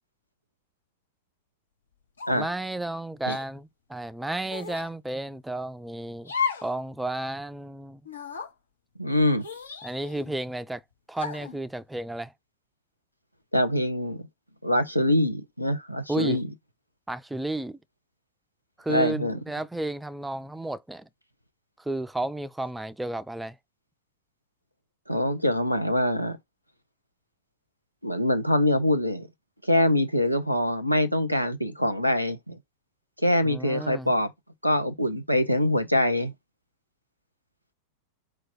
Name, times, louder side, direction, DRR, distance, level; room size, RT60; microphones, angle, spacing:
sound 1, 2.2-2.6 3.3-3.4 4.5-4.9 6.2-6.7 7.1-7.2 8.0-8.5 9.4-10.3 11.2-11.6, left 6 dB, 75° left, 1.0 m, -34 dB
voice 1, 2.3-6.3 6.6-8.0 9.8-10.8 11.1-12.3 16.1-16.4 17.1-17.8 18.8-21.1 21.8-23.6 33.4-34.1, right 2 dB, 5° right, 0.3 m, -32 dB
voice 2, 9.0-9.4 13.5-14.3 14.6-16.5 18.9-19.4 25.1-26.4 28.0-29.3 29.6-32.6 33.2-34.3 34.6-36.3, left 1 dB, 90° left, 0.7 m, -24 dB
4.5 x 2.3 x 4.7 m
figure-of-eight pair, 90°, 0 cm